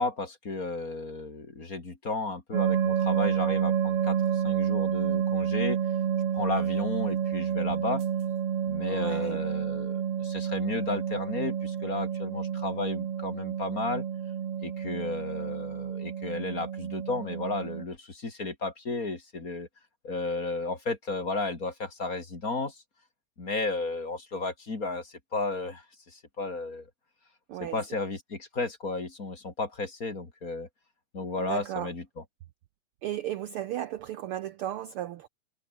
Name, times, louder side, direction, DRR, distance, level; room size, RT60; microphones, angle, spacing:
voice 1, 0.0-4.2 4.4-5.8 6.3-8.0 8.7-14.0 14.6-19.7 20.0-22.8 23.4-25.8 26.1-26.8 27.6-30.7 31.1-32.0, left 3 dB, 30° left, 3.2 m, -33 dB
sound 1, 2.5-17.8, right 8 dB, 55° right, 2.6 m, -29 dB
voice 2, 8.9-9.5 27.5-27.8 31.4-31.9 33.0-35.3, right 12 dB, 80° right, 1.2 m, -35 dB
omnidirectional pair, 3.4 m